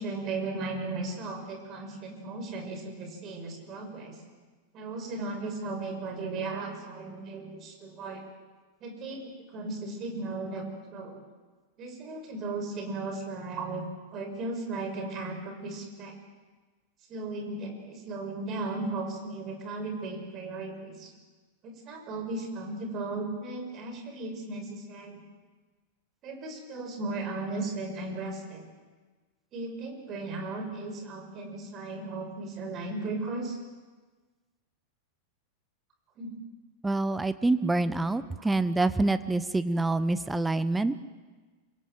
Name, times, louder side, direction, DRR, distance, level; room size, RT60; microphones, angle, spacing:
voice 1, 0.0-4.2 4.7-8.2 8.8-11.3 11.8-13.9 14.1-16.2 17.1-21.1 21.6-25.2 26.2-28.7 29.5-33.6 36.2-36.3 38.4-38.5, right 3 dB, 35° right, 5 dB, 6.0 m, -36 dB
voice 2, 36.8-40.9, right 2 dB, 10° right, 13 dB, 0.9 m, -26 dB
26.5 x 23.5 x 7.8 m, 1.3 s
figure-of-eight pair, 90°, 0 cm